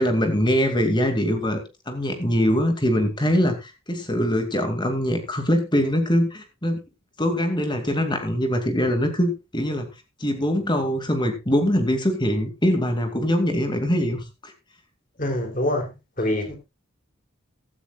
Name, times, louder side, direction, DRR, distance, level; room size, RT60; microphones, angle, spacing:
voice 1, 0.0-1.6 1.9-6.8 7.2-9.9 10.2-14.5, equal, 20° left, 2.5 m, -23 dB
voice 2, 15.2-16.6, left 1 dB, 40° left, 3.2 m, -25 dB
15.5 x 12.5 x 2.4 m
head